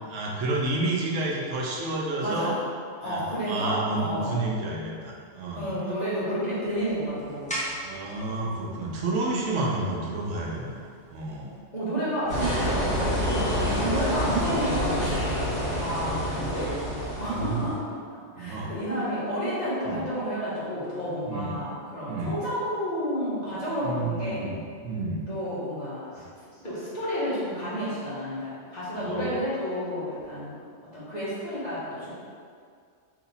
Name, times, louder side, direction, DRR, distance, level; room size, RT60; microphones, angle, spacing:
voice 1, 0.1-2.5 3.0-5.8 7.8-10.8 11.1-11.6 15.9-16.8 17.1-17.7 18.4-18.7 19.8-20.0 21.3-21.6 22.1-22.3 23.8-25.2 28.9-29.3, right 2 dB, 80° right, -3 dB, 1.0 m, -30 dB
voice 2, 2.2-2.6 3.0-4.4 5.5-7.7 11.7-15.1 15.4-16.6 17.2-17.8 18.4-24.5 25.3-26.3 26.6-30.5 30.8-32.1, equal, 40° left, -9 dB, 1.2 m, -31 dB
sound 1, 6.6-11.6, equal, 10° left, 0.4 m, -41 dB
sound 2, 12.3-17.7, equal, 75° left, 1.8 m, -27 dB
3.1 x 2.9 x 4.0 m, 2.2 s
omnidirectional pair, 1.2 m